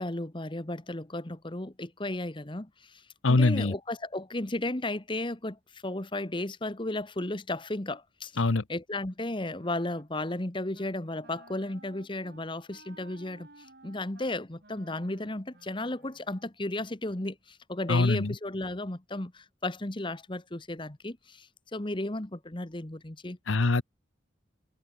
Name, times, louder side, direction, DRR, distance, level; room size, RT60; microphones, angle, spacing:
voice 1, 0.0-8.4 8.7-23.4, left 2 dB, 25° left, 1.2 m, -34 dB
voice 2, 3.2-3.7 8.4-8.6 17.9-18.3 23.5-23.8, left 3 dB, 85° left, 0.9 m, -23 dB
Wind instrument woodwind instrument, 9.3-10.4 10.7-11.0 11.2-16.5, right 2 dB, 55° right, 5.2 m, -56 dB
head